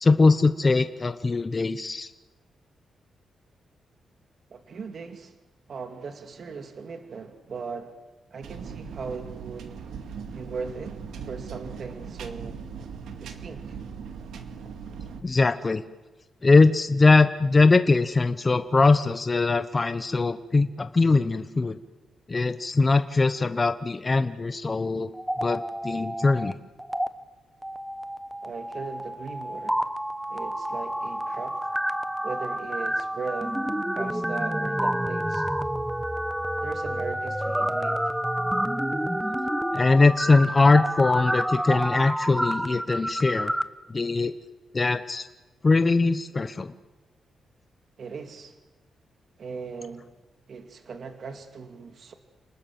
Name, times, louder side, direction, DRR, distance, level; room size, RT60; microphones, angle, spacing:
voice 1, 0.0-2.1 15.2-15.8 16.4-21.8 22.3-25.1 25.4-26.5 39.7-43.5 43.9-44.3 44.7-45.3 45.6-46.7, left 3 dB, 25° left, 1.0 m, -21 dB
voice 2, 4.5-5.3 5.7-8.0 8.3-9.8 10.3-11.0 11.3-12.6 13.2-13.8 28.4-29.8 30.3-31.6 32.2-33.6 34.0-35.5 36.6-38.0 48.0-48.6 49.4-50.1 50.5-52.1, right 5 dB, 50° right, 2.4 m, -38 dB
sound 1, 8.4-15.2, right 6 dB, 85° right, 2.3 m, -39 dB
sound 2, 25.1-26.5 26.8-27.1 27.6-43.6, equal, 5° right, 1.0 m, -29 dB
29.5 x 19.5 x 7.7 m
cardioid pair, 125°, 0 cm